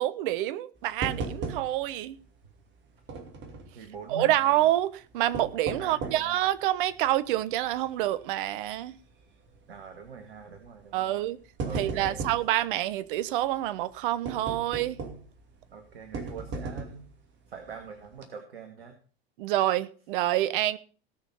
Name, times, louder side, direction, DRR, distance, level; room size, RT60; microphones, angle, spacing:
voice 1, 0.0-2.1 4.1-9.0 10.9-11.4 11.7-15.0 19.4-20.8, right 14 dB, 55° right, 1.0 m, -27 dB
sound 1, 1.0-2.0 2.3-2.4 3.1-3.7 5.1-6.4 6.9-7.0 7.6-7.9 8.2-8.3 9.5-9.8 10.6-10.8 11.2-12.5 14.2-15.4 16.1-17.1 17.7-17.8 18.1-18.2, right 4 dB, 35° right, 2.6 m, -36 dB
voice 2, 3.7-4.4 5.8-6.4 9.7-11.2 11.6-12.3 15.7-17.1 17.5-18.9, right 4 dB, 75° right, 2.1 m, -43 dB
17.5 x 6.4 x 5.6 m
figure-of-eight pair, 85°, 30 cm